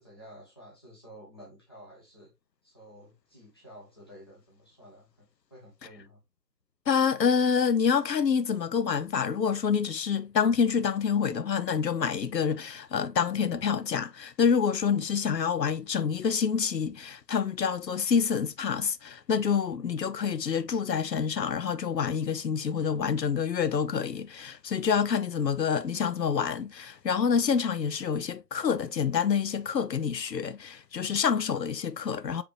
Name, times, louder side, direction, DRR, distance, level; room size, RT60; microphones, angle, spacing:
voice 1, 0.0-2.3 2.6-6.2, equal, 15° left, 0.8 m, -51 dB
voice 2, 6.9-32.4, left 6 dB, 85° left, 0.6 m, -27 dB
4.7 x 3.5 x 2.8 m
figure-of-eight pair, 150°, 48 cm